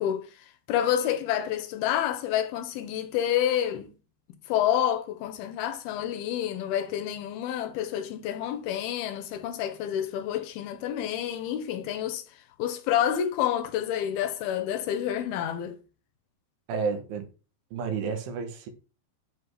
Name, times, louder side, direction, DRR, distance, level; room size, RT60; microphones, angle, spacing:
voice 1, 0.0-3.9 4.5-15.8, left 10 dB, 80° left, 2.6 m, -29 dB
voice 2, 16.7-17.3 17.7-18.7, right 5 dB, 70° right, 3.0 m, -31 dB
7.6 x 5.7 x 3.2 m
omnidirectional pair, 4.6 m